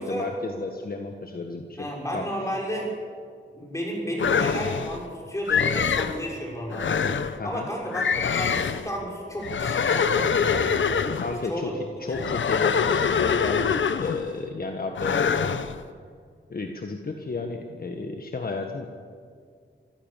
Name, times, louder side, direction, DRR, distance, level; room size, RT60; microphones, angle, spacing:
voice 1, 0.0-2.3 7.4-7.7 11.0-11.7 12.0-15.6 16.5-18.9, left 3 dB, 50° left, 3 dB, 1.5 m, -33 dB
voice 2, 1.8-2.9 3.5-7.0 7.4-11.2 11.5-11.7 12.1-12.2, equal, 15° left, -2 dB, 6.3 m, -32 dB
sound 1, 4.2-5.0 5.5-6.2 6.7-7.4 7.9-8.9 9.4-11.4 12.1-14.3 14.9-15.7, left 6 dB, 75° left, 1.0 m, -24 dB
26.5 x 15.5 x 7.5 m, 2.1 s
wide cardioid pair, 120°, 20 cm